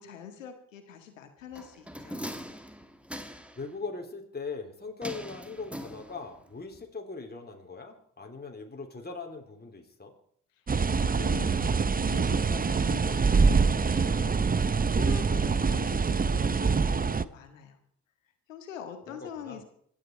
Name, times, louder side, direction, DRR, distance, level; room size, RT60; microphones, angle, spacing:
voice 1, 0.0-2.3 10.8-17.8 18.5-19.6, left 8 dB, 90° left, 7 dB, 1.8 m, -44 dB
sound 1, 1.6-3.7 5.0-6.5 6.7-6.8, equal, 5° right, 2.3 m, -41 dB
voice 2, 3.6-10.1 19.1-19.6, left 4 dB, 25° left, 2 dB, 3.5 m, -40 dB
sound 2, 10.7-17.2, right 5 dB, 25° right, 0.8 m, -25 dB
25.5 x 10.0 x 4.6 m, 0.65 s
hypercardioid pair, 45°, 38 cm